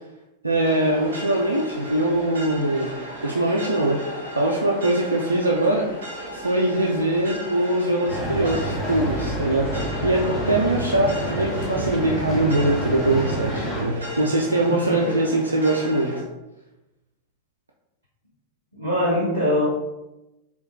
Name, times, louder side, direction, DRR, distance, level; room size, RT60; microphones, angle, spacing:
voice 1, 0.4-2.9 3.2-4.0 4.4-5.9 6.3-16.2, right 1 dB, 80° right, -1 dB, 0.3 m, -22 dB
sound 1, 0.6-16.2, right 1 dB, 65° right, 0.7 m, -36 dB
sound 2, 8.1-13.8, right 1 dB, 15° left, 0.9 m, -28 dB
voice 2, 14.7-15.2 18.7-19.7, left 1 dB, 85° left, -6 dB, 0.6 m, -23 dB
3.6 x 2.3 x 2.7 m, 0.98 s
figure-of-eight pair, 90°, 0 cm